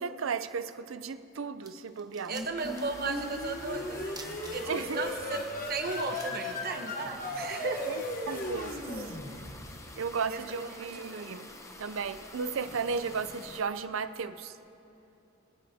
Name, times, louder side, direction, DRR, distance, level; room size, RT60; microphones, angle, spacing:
voice 1, 0.0-2.3 4.6-5.0 7.9-9.2 10.0-11.5 11.8-14.6, right 5 dB, 80° right, 12 dB, 0.5 m, -35 dB
sound 1, 1.2-1.3 1.6-3.0 3.3-3.4 4.1-5.0 5.4-5.5 5.7-7.3, right 4 dB, 20° right, 0.8 m, -49 dB
sound 2, 2.3-9.9, left 2 dB, 45° left, 1.1 m, -37 dB
voice 2, 2.3-4.2 4.5-7.9 10.3-11.5, right 4 dB, 50° right, 5 dB, 0.9 m, -36 dB
sound 3, 2.6-13.6, left 2 dB, 15° left, 0.6 m, -49 dB
23.5 x 9.3 x 2.8 m, 2.9 s
head